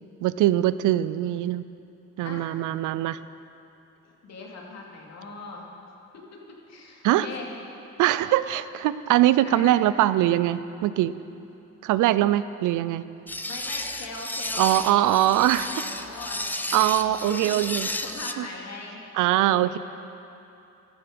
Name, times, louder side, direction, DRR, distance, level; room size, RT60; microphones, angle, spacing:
voice 1, 0.2-1.6 2.2-3.2 7.0-7.3 8.0-11.1 11.8-13.0 14.6-15.7 16.7-17.9 18.4-18.5 19.1-19.8, right 14 dB, 85° right, 15 dB, 0.5 m, -22 dB
voice 2, 4.2-5.7 6.1-6.4 6.7-7.5 9.4-9.8 13.4-15.0 15.3-17.6 17.8-19.0 19.6-19.8, left 3 dB, 60° left, -2 dB, 2.7 m, -40 dB
sound 1, 13.3-18.3, left 1 dB, 5° left, 0.6 m, -33 dB
15.0 x 12.0 x 5.2 m, 2.8 s
cardioid pair, 90°, 30 cm